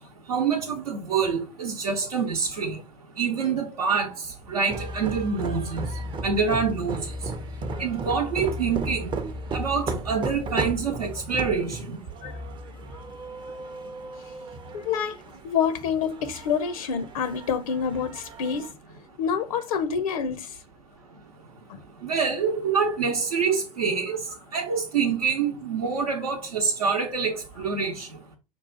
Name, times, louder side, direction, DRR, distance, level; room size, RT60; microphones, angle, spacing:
voice 1, 0.3-2.8 3.2-4.1 4.5-5.9 6.2-7.0 7.8-9.1 9.5-12.0 22.0-24.2 24.5-28.1, right 5 dB, 75° right, 0.8 m, -26 dB
sound 1, 4.7-18.7, right 2 dB, 25° right, 0.5 m, -35 dB
voice 2, 14.7-18.7 19.2-20.6 21.7-21.8, left 7 dB, 65° left, 0.5 m, -27 dB
5.4 x 2.4 x 3.8 m
figure-of-eight pair, 80°, 20 cm